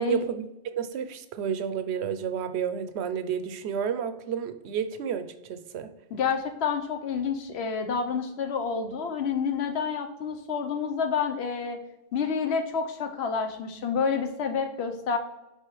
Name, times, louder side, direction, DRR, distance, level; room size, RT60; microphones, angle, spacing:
voice 1, 0.0-5.9, right 7 dB, 85° right, 10 dB, 0.9 m, -31 dB
voice 2, 6.1-11.8 12.1-15.2, left 6 dB, 85° left, 6 dB, 1.0 m, -29 dB
10.0 x 3.5 x 3.1 m, 0.97 s
omnidirectional pair, 1.1 m